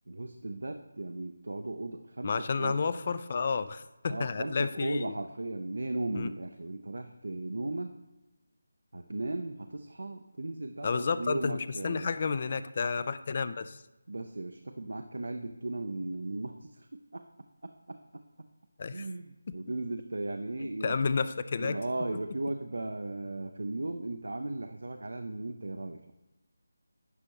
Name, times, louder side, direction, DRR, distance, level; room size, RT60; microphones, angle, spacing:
voice 1, 0.1-2.9 4.1-7.9 8.9-12.1 14.1-17.2 17.6-18.2 18.9-21.1 21.6-26.1, right 2 dB, 70° right, 6 dB, 0.5 m, -36 dB
voice 2, 2.2-5.2 6.2-6.3 10.8-13.8 18.8-19.0 20.8-21.8, left 5 dB, 40° left, 13 dB, 0.3 m, -31 dB
11.0 x 5.2 x 2.9 m, 0.99 s
figure-of-eight pair, 160°, 0 cm